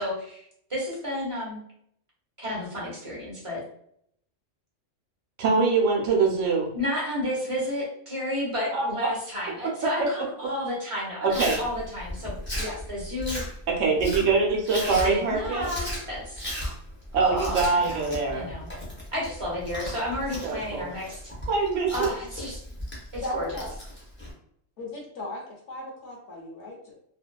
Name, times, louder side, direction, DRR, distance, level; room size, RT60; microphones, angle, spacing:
voice 1, 0.0-1.6 2.4-3.6 6.7-13.4 14.8-16.4 17.1-18.7 19.1-21.2 21.9-22.6 23.1-23.6, left 1 dB, 30° right, -5 dB, 0.8 m, -32 dB
voice 2, 5.4-6.7 8.7-8.9 11.2-11.6 13.7-15.7 17.1-18.5 20.4-20.9 21.5-22.1, right 4 dB, 75° right, 0 dB, 1.0 m, -24 dB
Chewing mastication, 11.3-24.3, equal, 10° left, 0.6 m, -36 dB
voice 3, 23.2-23.7 24.8-26.9, left 1 dB, 65° left, -2 dB, 1.0 m, -36 dB
2.6 x 2.2 x 2.2 m, 0.68 s
omnidirectional pair, 1.3 m